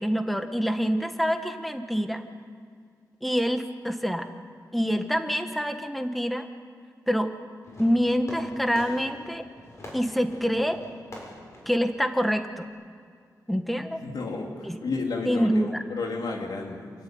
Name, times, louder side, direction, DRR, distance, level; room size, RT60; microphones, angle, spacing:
voice 1, 0.0-2.2 3.2-4.3 4.7-6.5 7.1-7.4 7.8-9.5 9.9-10.9 11.6-12.7 13.5-14.0 14.6-14.8 15.2-15.8, equal, ahead, 7 dB, 1.4 m, -26 dB
Fireworks, 7.6-12.7, left 1 dB, 45° left, 7.4 m, -45 dB
voice 2, 14.0-16.9, left 3 dB, 80° left, 1 dB, 3.4 m, -32 dB
28.0 x 13.0 x 9.5 m, 2.1 s
wide cardioid pair, 115°, 7 cm